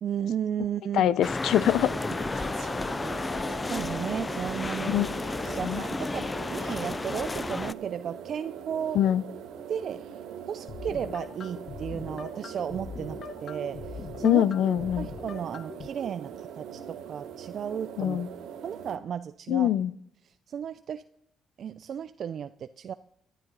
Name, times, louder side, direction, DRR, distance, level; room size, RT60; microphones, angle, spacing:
voice 1, 0.0-1.1 2.5-2.8 3.2-3.3 3.7-5.0 5.4-9.0 9.7-10.0 10.5-14.4 15.0-18.2 18.6-19.7 20.5-21.0 21.6-22.9, right 8 dB, 60° right, 12 dB, 0.4 m, -34 dB
voice 2, 0.9-2.0 4.8-5.1 5.6-5.8 8.9-9.2 14.2-15.1 18.0-18.3 19.5-19.9, left 11 dB, 80° left, 20 dB, 0.5 m, -24 dB
sound 1, 1.2-7.7, left 3 dB, 20° left, 0.4 m, -32 dB
sound 2, 1.6-19.0, right 8 dB, 85° right, 1.2 m, -42 dB
sound 3, 10.7-15.9, left 6 dB, 55° left, 0.9 m, -42 dB
13.5 x 11.5 x 3.9 m, 0.74 s
cardioid pair, 90°, 0 cm